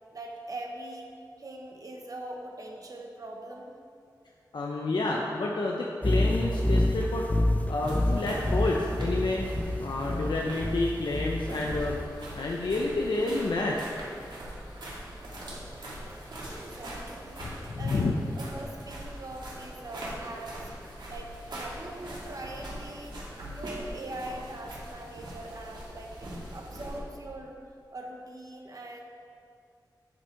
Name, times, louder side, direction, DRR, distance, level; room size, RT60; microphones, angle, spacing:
voice 1, 0.1-1.1 1.4-3.8 16.5-17.4 17.7-18.1 18.4-20.7 21.1-23.2 23.5-27.6 27.9-29.0, right 1 dB, 50° right, 1 dB, 1.2 m, -42 dB
voice 2, 4.5-7.2 7.7-9.4 9.8-12.0 12.4-13.8 17.4-18.1, left 2 dB, 80° left, -1 dB, 0.7 m, -29 dB
sound 1, 6.0-12.0, left 1 dB, 20° left, 0.6 m, -28 dB
sound 2, 7.8-27.0, right 1 dB, 80° right, 2.2 m, -42 dB
8.2 x 7.7 x 4.6 m, 2.4 s
wide cardioid pair, 100°, 8 cm